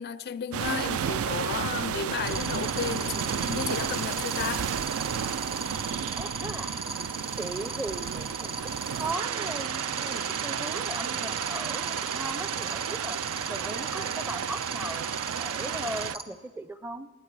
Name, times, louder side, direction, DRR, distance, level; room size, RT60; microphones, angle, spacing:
voice 1, 0.0-4.7, left 7 dB, 45° left, 0.4 m, -33 dB
sound 1, 0.5-16.2, right 8 dB, 65° right, 0.4 m, -32 dB
sound 2, 2.3-16.2, right 3 dB, 25° right, 1.0 m, -35 dB
voice 2, 6.2-6.8 7.4-8.7 9.0-13.2 13.5-17.1, right 1 dB, 10° right, 0.5 m, -38 dB
20.0 x 15.0 x 4.7 m
head